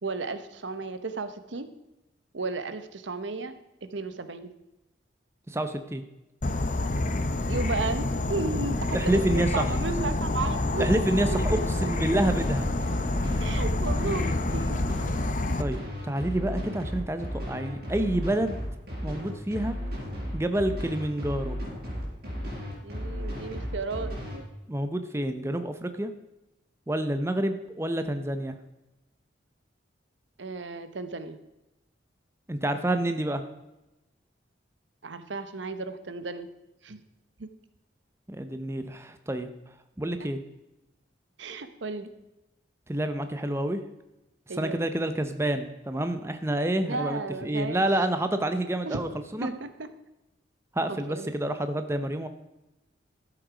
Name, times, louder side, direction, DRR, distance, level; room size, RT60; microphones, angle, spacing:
voice 1, 0.0-1.7 2.3-3.5 3.8-4.5 7.5-12.0 13.4-14.8 22.8-24.5 30.4-31.4 35.0-36.5 36.8-37.0 37.4-37.5 41.4-42.1 44.5-44.8 46.8-47.8 48.8-49.0 49.4-49.9 50.9-51.3, right 3 dB, 75° right, 11 dB, 0.9 m, -34 dB
voice 2, 5.5-6.0 8.9-9.6 10.8-12.7 15.6-18.6 19.0-19.8 20.3-21.6 24.7-26.1 26.9-28.6 32.5-33.4 38.3-39.5 40.0-40.4 42.9-43.8 44.6-49.5 50.7-52.3, right 1 dB, 15° right, 9 dB, 0.6 m, -28 dB
Insect / Frog, 6.4-15.6, left 2 dB, 40° left, 0.7 m, -28 dB
sound 1, 11.1-24.4, equal, 55° right, 4.7 m, -34 dB
13.0 x 7.8 x 5.0 m, 0.96 s
head